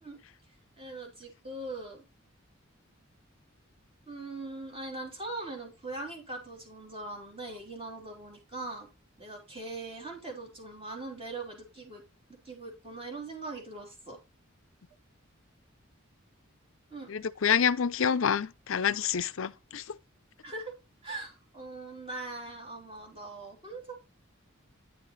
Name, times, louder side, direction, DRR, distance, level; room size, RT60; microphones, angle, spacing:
voice 1, 0.8-2.0 4.1-8.9 9.2-12.0 12.3-14.2 16.9-17.1 20.4-20.7 21.0-23.9, right 2 dB, 25° right, 3.4 m, -41 dB
voice 2, 17.1-20.0, left 7 dB, 70° left, 0.5 m, -28 dB
9.9 x 5.7 x 4.1 m
head